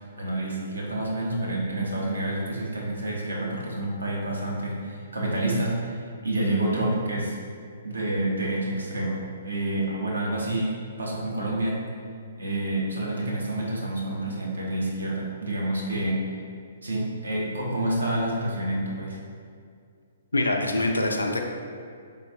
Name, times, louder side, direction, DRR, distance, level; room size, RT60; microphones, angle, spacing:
voice 1, 0.2-7.4 7.8-11.8 12.4-16.4 16.8-19.2, right 1 dB, 75° right, -3 dB, 0.9 m, -28 dB
voice 2, 20.3-21.4, left 2 dB, 80° left, 3 dB, 0.4 m, -24 dB
3.8 x 3.6 x 2.7 m, 2.3 s
figure-of-eight pair, 125°, 0 cm